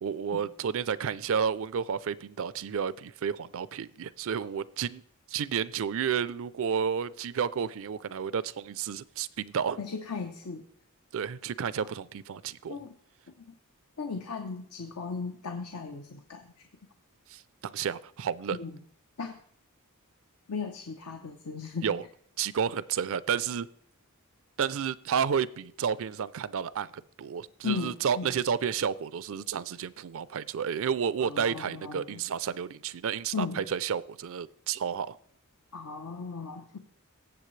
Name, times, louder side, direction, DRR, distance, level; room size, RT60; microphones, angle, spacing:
voice 1, 0.0-5.0 5.3-9.8 11.1-12.8 17.3-18.6 21.8-22.0 22.4-23.7 24.6-35.2, right 7 dB, 65° right, 0.4 m, -31 dB
voice 2, 9.8-10.6 11.8-11.9 12.7-13.0 13.4-13.5 14.0-16.7 18.5-18.8 19.2-19.4 20.5-21.9 27.6-28.3 31.2-32.2 33.3-33.6 35.7-36.8, left 5 dB, 85° left, 0.9 m, -36 dB
18.5 x 7.8 x 3.2 m
head